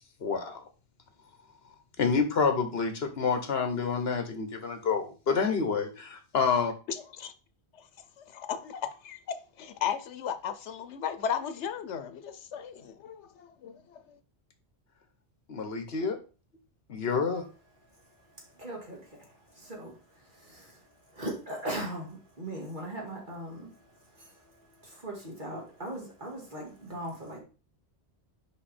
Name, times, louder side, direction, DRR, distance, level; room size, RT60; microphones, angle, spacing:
voice 1, 0.2-0.6 2.0-6.7 15.5-16.2 16.9-17.4, left 5 dB, 65° left, 1.3 m, -28 dB
voice 2, 6.9-7.3 8.2-14.0, left 8 dB, 85° left, 1.0 m, -35 dB
voice 3, 18.6-19.2 19.6-20.0 20.4-20.7 21.1-23.7 24.2-24.3 24.9-27.4, right 1 dB, 45° right, 2.2 m, -38 dB
5.5 x 5.2 x 4.2 m
omnidirectional pair, 1.1 m